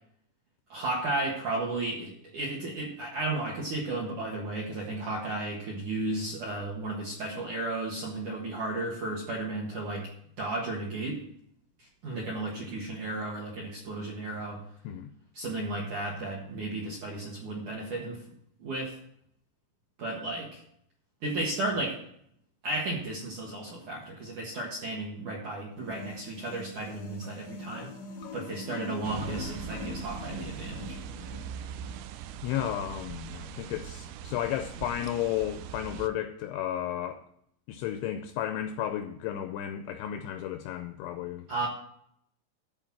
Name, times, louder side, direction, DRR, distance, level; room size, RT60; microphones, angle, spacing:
voice 1, 0.7-10.1 10.4-11.2 11.8-14.6 15.3-18.2 18.6-18.9 20.0-20.6 21.2-22.0 22.6-27.9 28.3-31.0 41.5-41.7, right 2 dB, 65° right, 2.0 m, -34 dB
sound 1, 25.7-32.0, left 3 dB, 70° left, 1.8 m, -43 dB
sound 2, 29.0-36.1, right 9 dB, 80° right, 2.9 m, -41 dB
voice 2, 32.4-37.2 37.7-41.7, left 11 dB, 85° left, 2.6 m, -33 dB
13.0 x 4.6 x 7.2 m
omnidirectional pair, 5.9 m